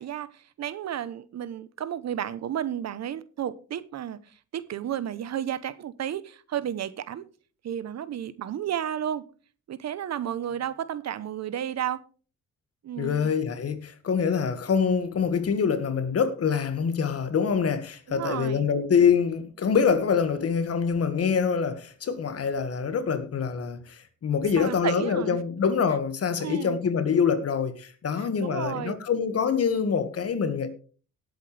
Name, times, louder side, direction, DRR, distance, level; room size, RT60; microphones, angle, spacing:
voice 1, 0.0-4.2 4.5-7.2 7.6-9.2 9.7-12.0 12.8-13.3 18.1-18.7 24.6-25.4 26.4-26.8 28.2-29.0, right 10 dB, 60° right, 1.0 m, -32 dB
voice 2, 13.0-30.7, left 6 dB, 55° left, 1.8 m, -25 dB
18.0 x 8.1 x 3.4 m
cardioid pair, 90°, 30 cm